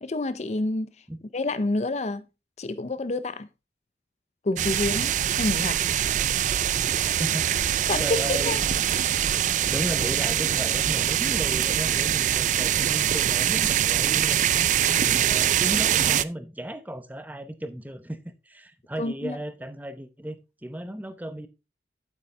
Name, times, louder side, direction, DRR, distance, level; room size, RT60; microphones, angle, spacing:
voice 1, 0.0-0.9 1.3-2.2 2.6-3.5 4.4-6.2 7.9-8.6 19.0-19.4, left 2 dB, 40° left, 0.5 m, -28 dB
sound 1, 4.6-16.2, right 10 dB, 45° right, 0.3 m, -23 dB
voice 2, 7.0-8.7 9.7-21.5, right 1 dB, 10° right, 0.7 m, -35 dB
8.4 x 8.4 x 3.2 m
head